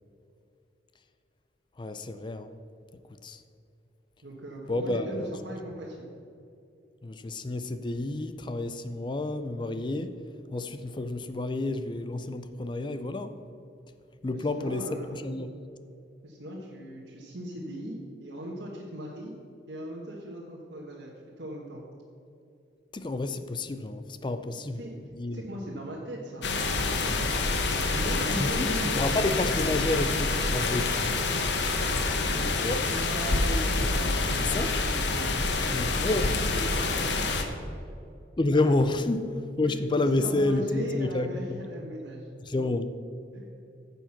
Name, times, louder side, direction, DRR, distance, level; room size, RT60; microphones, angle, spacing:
voice 1, 1.8-2.5 3.2-3.4 4.7-5.3 7.0-10.1 10.5-13.3 14.2-15.5 22.9-24.8 25.2-25.4 28.4-31.0 32.5-32.8 34.4-34.7 35.7-36.3 38.4-41.6 42.5-42.9, left 2 dB, 25° left, 10 dB, 0.4 m, -29 dB
voice 2, 4.2-6.1 14.3-15.3 16.2-19.3 19.7-21.8 24.5-25.0 25.3-26.5 27.9-29.1 32.1-37.5 38.5-38.7 39.6-42.3 43.3-43.5, equal, 65° right, -4 dB, 1.3 m, -39 dB
sound 1, 26.4-37.4, left 3 dB, 70° left, 1.0 m, -27 dB
10.0 x 7.0 x 5.9 m, 2.6 s
head